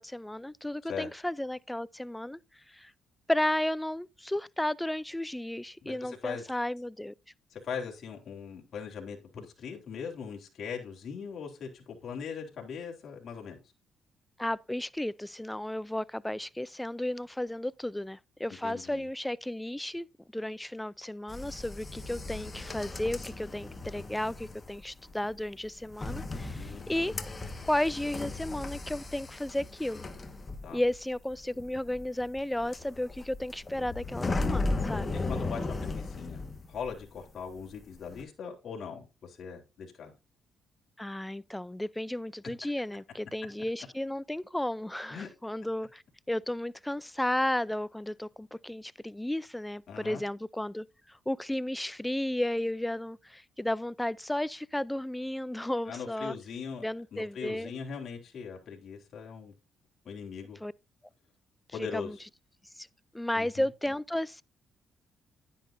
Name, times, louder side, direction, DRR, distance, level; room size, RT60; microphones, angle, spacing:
voice 1, 0.0-2.4 2.7-2.9 3.3-7.1 14.4-20.1 20.3-27.1 27.6-30.0 30.7-35.1 41.0-46.0 46.3-56.4 56.8-57.7 60.6-60.7 61.8-62.2 62.8-62.9 63.1-64.4, left 1 dB, 5° left, 0.5 m, -33 dB
voice 2, 5.8-6.4 7.5-13.6 18.6-19.1 26.5-26.9 30.6-30.8 35.3-36.4 36.7-40.1 45.1-45.3 49.9-50.2 55.8-56.8 57.1-59.5 60.0-60.6 61.7-62.2 63.3-63.7, left 6 dB, 55° left, 3.8 m, -40 dB
sound 1, 21.3-37.2 37.5-38.2, left 3 dB, 25° left, 1.5 m, -36 dB
10.5 x 10.0 x 2.6 m
cardioid pair, 90°, 0 cm